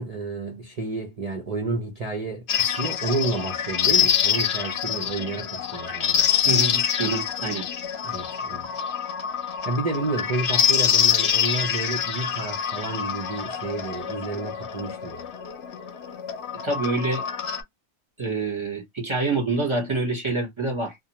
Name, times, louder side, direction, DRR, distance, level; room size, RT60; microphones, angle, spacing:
voice 1, 0.0-6.3 8.0-8.7 9.6-15.3, right 3 dB, 55° right, 0.4 m, -30 dB
sound 1, 2.5-17.6, left 8 dB, 60° left, 0.8 m, -25 dB
voice 2, 6.4-7.7 16.6-17.3 18.2-21.0, right 3 dB, 25° right, 0.7 m, -26 dB
2.5 x 2.1 x 2.9 m
omnidirectional pair, 1.4 m